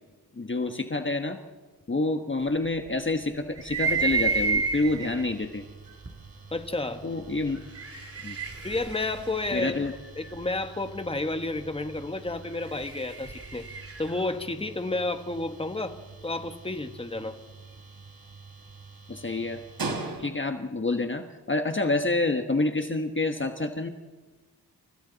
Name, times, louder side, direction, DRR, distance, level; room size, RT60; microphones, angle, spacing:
voice 1, 0.3-1.4 1.9-5.6 7.0-7.6 8.2-8.4 9.5-9.9 19.1-19.6 20.2-23.9, left 2 dB, 30° left, 6 dB, 1.2 m, -28 dB
sound 1, 3.6-5.2 6.1-6.2 7.5-10.4 12.4-14.2, right 4 dB, 35° right, 2.5 m, -30 dB
sound 2, 3.8-20.7, right 3 dB, 60° right, 3.5 m, -44 dB
voice 2, 6.5-7.0 8.6-9.8 10.2-13.7 14.0-16.0 16.2-17.4, left 2 dB, 15° left, 8 dB, 1.4 m, -31 dB
30.0 x 29.5 x 4.0 m, 1.4 s
wide cardioid pair, 95°, 39 cm